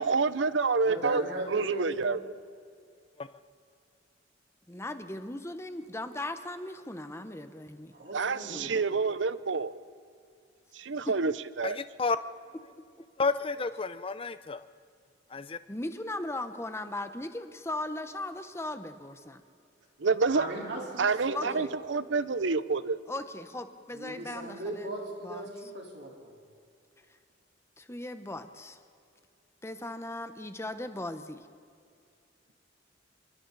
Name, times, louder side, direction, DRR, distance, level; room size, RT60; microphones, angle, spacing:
voice 1, 0.0-1.2 1.5-2.2 8.1-9.7 10.8-11.3 11.6-11.8 20.0-20.5 21.0-23.0, right 4 dB, 80° right, 15 dB, 0.7 m, -27 dB
voice 2, 0.8-2.1 7.9-9.0 20.3-21.6 22.5-22.6 23.9-26.3, right 1 dB, 65° right, -1 dB, 4.0 m, -38 dB
voice 3, 4.7-7.9 8.4-8.8 11.1-11.2 15.7-19.4 21.3-21.7 23.1-24.9 25.2-25.5 27.8-28.8 29.6-31.4, left 1 dB, 15° left, 9 dB, 1.0 m, -38 dB
voice 4, 11.6-12.4 13.2-14.6 15.3-15.6, left 4 dB, 30° left, 13 dB, 0.6 m, -31 dB
27.0 x 23.5 x 4.1 m, 2.4 s
head